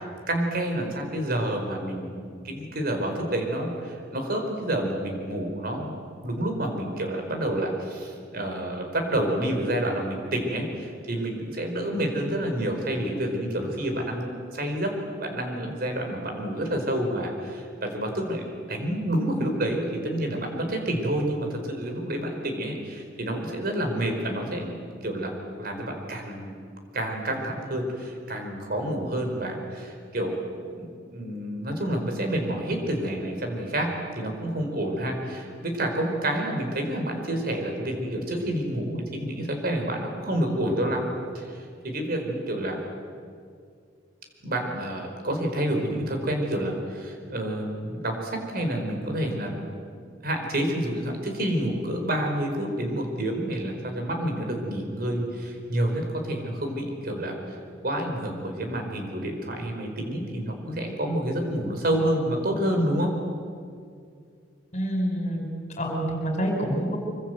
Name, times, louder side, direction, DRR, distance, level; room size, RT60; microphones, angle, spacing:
voice 1, 0.0-5.9 6.2-14.9 15.2-25.3 25.6-26.5 26.9-30.4 30.7-41.1 41.3-42.8 44.4-49.6 50.2-57.4 57.8-63.1, right 1 dB, 55° right, 3 dB, 4.9 m, -29 dB
voice 2, 64.7-65.5 65.8-67.0, equal, 40° left, 2 dB, 5.0 m, -27 dB
25.0 x 24.5 x 8.0 m, 2.3 s
head